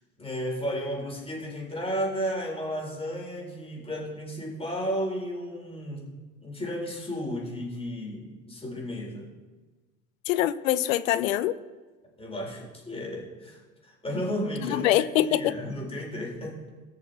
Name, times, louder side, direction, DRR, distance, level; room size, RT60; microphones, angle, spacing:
voice 1, 0.2-6.2 6.4-9.3 12.2-14.9 15.2-16.6, equal, 15° left, -1 dB, 4.1 m, -33 dB
voice 2, 10.3-11.5 14.6-15.5, left 13 dB, 75° left, 15 dB, 0.7 m, -24 dB
18.5 x 6.6 x 4.1 m, 1.3 s
hypercardioid pair, 75°, 41 cm